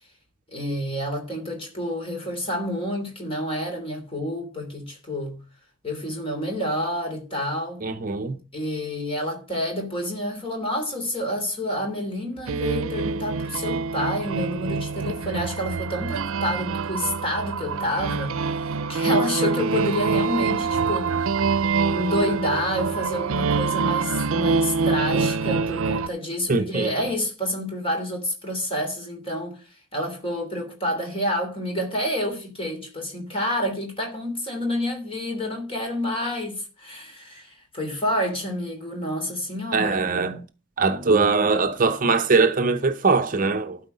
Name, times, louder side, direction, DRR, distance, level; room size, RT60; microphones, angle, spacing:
voice 1, 0.5-5.4 5.8-7.8 8.5-21.6 21.9-29.6 29.9-40.0, left 1 dB, 25° left, 3.0 m, -29 dB
voice 2, 7.8-8.4 26.5-26.9 39.7-40.4 40.8-43.8, right 4 dB, 40° right, 0.7 m, -21 dB
sound 1, 12.5-26.1, right 4 dB, 85° right, 0.5 m, -25 dB
12.5 x 4.8 x 6.6 m
head